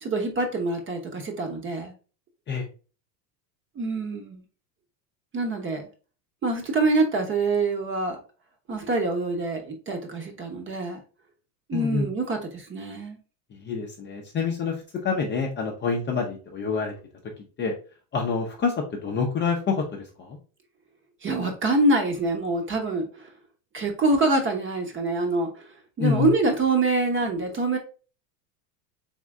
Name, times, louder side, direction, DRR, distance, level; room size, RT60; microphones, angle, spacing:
voice 1, 0.0-1.9 3.8-4.4 5.3-5.8 6.4-8.2 8.7-11.0 11.7-13.2 21.2-23.3 23.7-25.6 26.0-27.8, right 2 dB, 25° right, 4 dB, 0.9 m, -25 dB
voice 2, 11.7-12.1 13.6-16.9 17.6-17.7 18.1-18.7 19.0-19.8 20.2-20.4 26.0-26.3, left 5 dB, 25° left, 0 dB, 0.6 m, -27 dB
3.6 x 3.1 x 3.6 m, 0.36 s
supercardioid pair, 125°, 49 cm